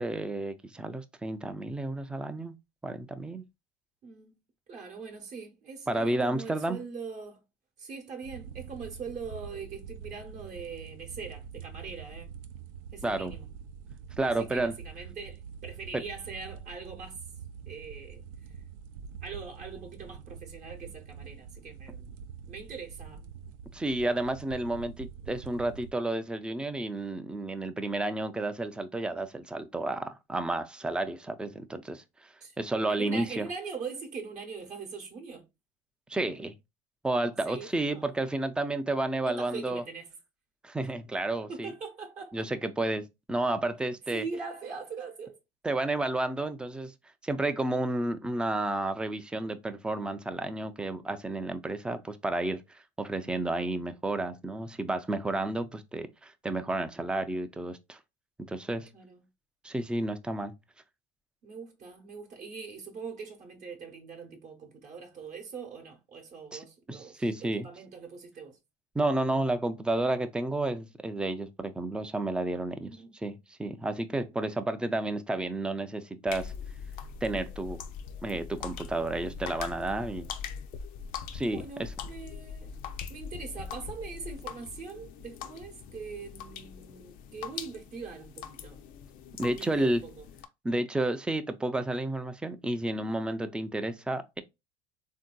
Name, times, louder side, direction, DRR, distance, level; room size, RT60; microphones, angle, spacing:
voice 1, 0.0-2.6 2.8-3.4 5.9-6.8 13.0-13.3 14.2-14.7 15.9-16.0 23.7-32.3 32.6-33.5 36.1-36.5 37.0-39.8 40.6-41.7 42.3-44.2 45.6-46.9 47.2-58.0 58.5-58.9 59.6-60.5 66.5-67.7 69.0-76.5 77.2-77.8 78.2-80.3 81.3-81.9 89.4-90.0 90.6-94.4, right 2 dB, 5° right, 0.3 m, -31 dB
voice 2, 4.0-4.4 4.7-7.4 7.8-12.4 12.9-13.5 14.2-17.2 17.7-18.2 19.2-22.1 22.5-23.3 32.4-32.6 32.9-35.5 37.5-38.1 39.2-40.1 41.5-42.4 44.1-45.4 58.7-59.2 61.4-68.6 72.8-73.1 81.5-82.7 83.1-88.8 89.4-90.2, right 5 dB, 45° right, 0.9 m, -42 dB
sound 1, 8.2-25.9, right 7 dB, 90° right, 0.4 m, -45 dB
sound 2, 76.3-90.4, left 7 dB, 60° left, 0.5 m, -42 dB
3.5 x 2.6 x 2.2 m
supercardioid pair, 110°, 17 cm